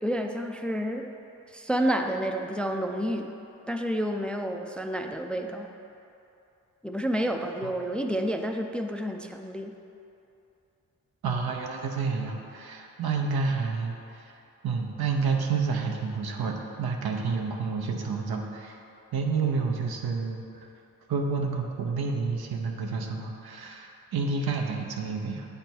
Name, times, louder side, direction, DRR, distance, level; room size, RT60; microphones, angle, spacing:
voice 1, 0.0-1.1 1.5-3.3 3.7-5.7 6.8-9.7, equal, 5° left, 4 dB, 0.4 m, -29 dB
voice 2, 11.2-14.3 14.6-18.8 19.1-20.4 21.1-25.5, right 4 dB, 80° right, 2 dB, 0.7 m, -29 dB
8.0 x 3.4 x 4.4 m, 2.8 s
cardioid pair, 45°, 37 cm